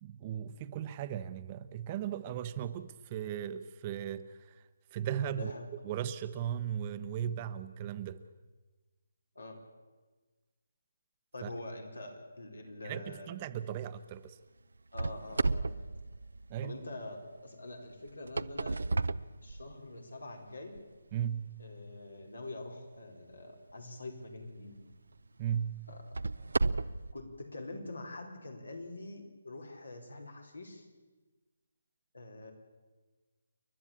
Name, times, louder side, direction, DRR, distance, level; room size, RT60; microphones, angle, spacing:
voice 1, 0.0-4.6 4.9-5.5 5.8-8.2 11.4-11.5 12.8-14.4 16.5-16.8 21.1-21.6 25.4-25.9, right 9 dB, 30° right, 12 dB, 0.8 m, -37 dB
voice 2, 5.4-5.7 9.3-9.6 11.3-13.3 14.9-15.9 16.6-17.2 17.4-18.8 19.4-20.7 21.6-24.8 25.9-26.1 27.1-30.9 32.1-32.5, left 2 dB, 90° left, 3 dB, 4.5 m, -45 dB
sound 1, 14.9-16.9 18.1-20.0 20.7-20.8 21.5-21.6 24.2-24.4 24.9-25.0 25.9-27.1, right 3 dB, 75° right, 0.6 m, -33 dB
29.0 x 11.5 x 8.7 m, 1.3 s
figure-of-eight pair, 150°, 0 cm